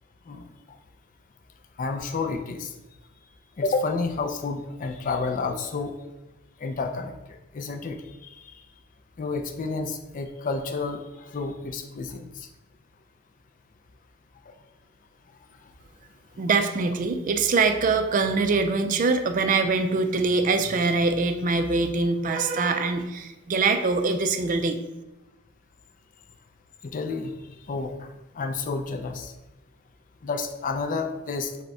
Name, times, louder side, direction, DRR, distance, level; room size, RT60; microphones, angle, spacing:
voice 1, 0.3-0.8 1.8-2.7 3.6-5.9 6.6-8.6 9.2-12.5 14.5-14.6 26.8-27.3 27.7-28.1 28.3-29.3 30.2-31.6, left 4 dB, 40° left, 6 dB, 0.4 m, -30 dB
voice 2, 16.4-24.8, right 4 dB, 40° right, 8 dB, 0.3 m, -23 dB
4.9 x 2.2 x 4.7 m, 1.0 s
head